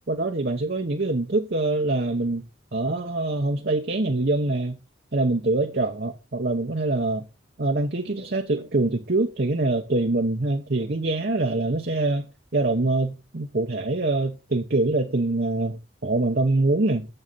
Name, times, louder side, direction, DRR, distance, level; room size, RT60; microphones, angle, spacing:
voice 1, 0.1-2.5 2.7-4.8 5.1-7.3 7.6-12.2 12.5-17.1, right 2 dB, 55° right, 0.9 m, -24 dB
7.7 x 7.2 x 5.5 m
head